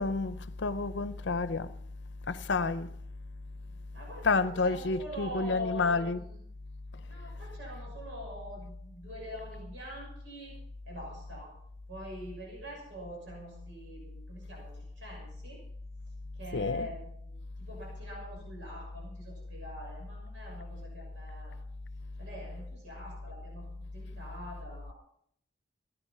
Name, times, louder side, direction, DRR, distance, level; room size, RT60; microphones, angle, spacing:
voice 1, 0.0-1.7 2.3-2.9 4.2-6.2 16.5-16.9, left 3 dB, 70° left, 0.7 m, -30 dB
voice 2, 3.9-6.4 7.1-10.6 10.9-11.5 11.9-15.6 16.3-21.6 22.2-24.9, left 1 dB, 80° right, 6.5 m, -44 dB
17.0 x 10.5 x 5.7 m
head